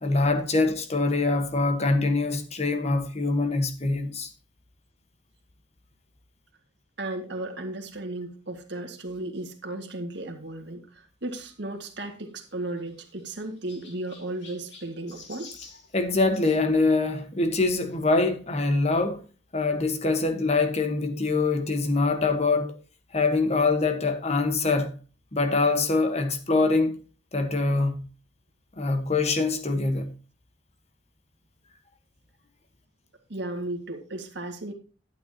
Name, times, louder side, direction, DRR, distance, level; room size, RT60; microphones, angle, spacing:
voice 1, 0.0-4.3 15.9-19.2 19.5-22.8 23.1-24.9 25.3-27.0 27.3-28.1 28.8-30.1, left 3 dB, 35° left, 1.2 m, -24 dB
voice 2, 7.0-15.5 33.3-34.7, right 2 dB, 60° right, 1.8 m, -35 dB
Chirp tweet, 12.3-16.6 17.8-17.9 18.6-18.7 19.0-19.1 20.3-20.4, left 4 dB, 60° left, 2.9 m, -50 dB
11.5 x 9.2 x 2.8 m
head